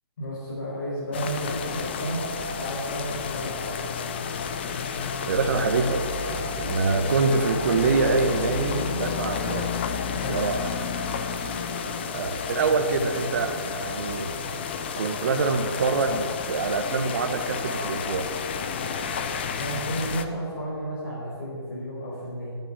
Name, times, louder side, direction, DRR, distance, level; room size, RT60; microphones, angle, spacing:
voice 1, 0.2-2.2 2.5-3.9 10.1-10.5 19.6-22.6, right 1 dB, 45° left, -7 dB, 4.8 m, -32 dB
sound 1, 1.1-20.2, left 6 dB, 25° left, 0.7 m, -31 dB
voice 2, 5.3-6.0 6.3-9.7 10.3-10.8 11.4-11.5 12.1-14.3 15.0-18.3, right 4 dB, 35° right, 4 dB, 1.0 m, -25 dB
11.0 x 9.3 x 9.9 m, 2.3 s
hypercardioid pair, 170°, 14 cm